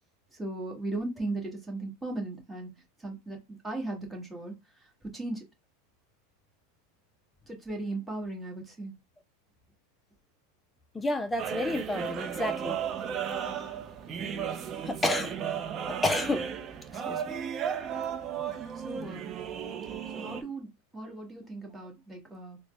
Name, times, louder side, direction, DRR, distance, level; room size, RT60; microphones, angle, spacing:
voice 1, 0.3-2.7 3.0-4.5 5.1-5.4 7.5-8.9 18.7-19.3 20.1-22.6, right 2 dB, 5° right, 1.6 m, -37 dB
voice 2, 10.9-12.8 14.8-15.3 15.9-16.5 17.1-17.2, left 2 dB, 10° left, 0.4 m, -30 dB
sound 1, 11.4-20.4, right 8 dB, 30° right, 0.7 m, -34 dB
3.8 x 2.1 x 3.4 m
supercardioid pair, 125°, 0 cm